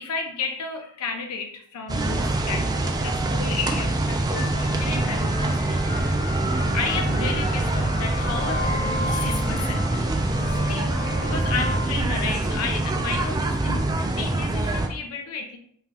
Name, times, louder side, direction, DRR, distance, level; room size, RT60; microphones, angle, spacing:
voice 1, 0.0-10.1 10.4-15.6, left 5 dB, 75° left, 4 dB, 0.4 m, -33 dB
sound 1, 1.9-14.9, right 2 dB, 20° right, 0.3 m, -25 dB
sound 2, 4.3-11.9, left 2 dB, 40° left, 0.7 m, -33 dB
5.3 x 2.4 x 2.8 m, 0.65 s
head